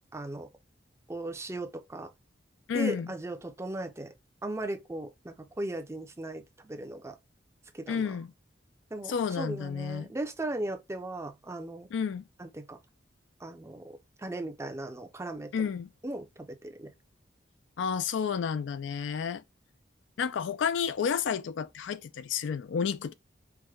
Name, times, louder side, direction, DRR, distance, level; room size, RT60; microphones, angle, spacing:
voice 1, 0.1-0.5 1.1-2.1 2.7-4.1 4.4-7.2 7.7-8.2 8.9-11.9 12.4-12.8 13.4-15.7 16.0-16.9, right 2 dB, 15° right, 0.5 m, -37 dB
voice 2, 2.7-3.1 7.9-8.3 9.1-10.1 11.9-12.2 15.5-15.9 17.8-19.4 20.2-23.1, left 6 dB, 85° left, 0.4 m, -31 dB
4.6 x 2.1 x 2.3 m
head